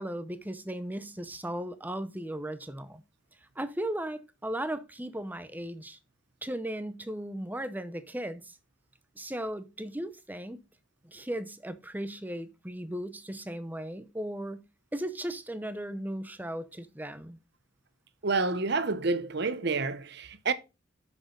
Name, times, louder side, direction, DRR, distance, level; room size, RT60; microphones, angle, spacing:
voice 1, 0.0-3.0 3.6-6.0 6.4-8.6 9.2-10.6 11.0-14.6 14.9-17.4, right 1 dB, 10° right, 0.8 m, -36 dB
voice 2, 18.2-20.5, right 3 dB, 60° right, 0.9 m, -29 dB
10.5 x 6.3 x 3.8 m
head